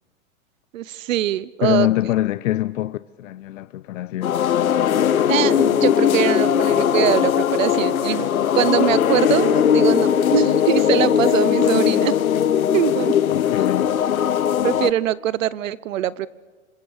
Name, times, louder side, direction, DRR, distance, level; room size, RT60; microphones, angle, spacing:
voice 1, 0.7-1.9 5.3-8.3 8.5-12.1 12.7-13.1 14.6-16.3, right 12 dB, 70° right, 1.0 m, -22 dB
voice 2, 1.6-4.4 13.3-13.9, left 14 dB, 70° left, 0.7 m, -24 dB
sound 1, 4.2-14.9, left 9 dB, 90° left, 1.1 m, -19 dB
26.5 x 25.5 x 6.7 m
hypercardioid pair, 115°, 41 cm